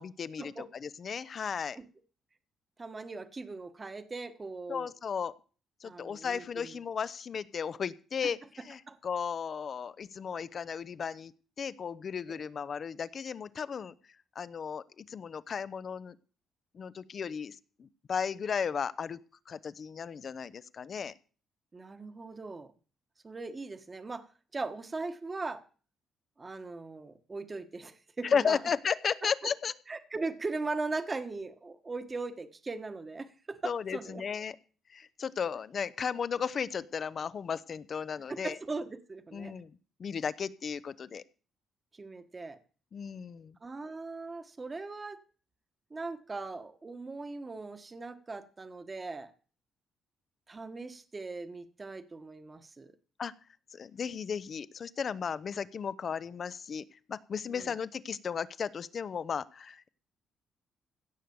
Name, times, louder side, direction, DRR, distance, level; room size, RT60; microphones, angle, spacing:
voice 1, 0.0-1.8 4.7-5.3 5.8-11.3 11.6-13.9 14.4-16.2 16.7-19.2 19.5-21.1 28.2-29.7 33.6-34.6 34.9-38.6 39.3-39.7 40.0-41.2 42.9-43.6 53.2-53.3 53.7-59.9, left 6 dB, 50° left, 16 dB, 0.7 m, -35 dB
voice 2, 2.8-4.9 5.8-6.8 8.9-9.0 12.3-12.4 21.7-22.7 23.2-25.6 26.4-28.6 29.2-29.5 29.9-34.2 38.3-39.5 41.9-42.6 43.6-45.2 45.9-49.3 50.5-52.9 57.5-57.7, right 3 dB, 25° right, 9 dB, 1.3 m, -39 dB
16.5 x 6.5 x 7.0 m, 0.40 s
cardioid pair, 90°, 0 cm